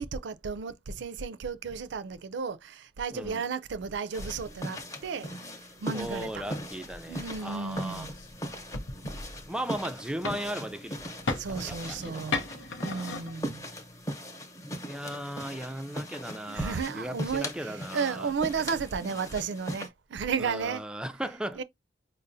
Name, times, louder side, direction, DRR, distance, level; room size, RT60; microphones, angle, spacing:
voice 1, 0.0-5.3 5.8-6.5 7.1-8.1 11.4-13.7 16.5-20.8 21.5-21.6, right 5 dB, 70° right, 0.4 m, -33 dB
voice 2, 3.1-3.4 5.9-8.1 9.5-11.2 11.6-12.4 12.9-13.2 14.8-18.3 20.4-21.6, right 1 dB, 5° right, 0.3 m, -37 dB
sound 1, 4.1-19.9, equal, 15° left, 0.9 m, -39 dB
sound 2, 6.1-14.0, left 3 dB, 80° left, 0.7 m, -39 dB
5.4 x 2.1 x 2.6 m
head